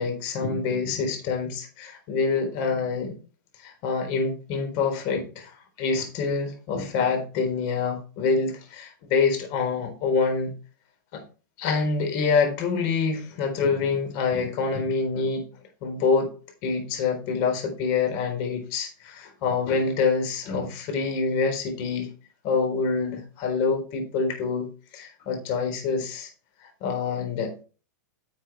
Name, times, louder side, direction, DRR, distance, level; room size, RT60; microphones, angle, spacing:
voice 1, 0.0-3.1 3.6-10.5 11.1-11.2 11.6-15.4 15.8-16.3 16.6-22.1 22.4-26.3 26.6-27.5, left 4 dB, 45° left, 3.9 m, -26 dB
11.0 x 7.4 x 3.3 m
hypercardioid pair, 130°, 10 cm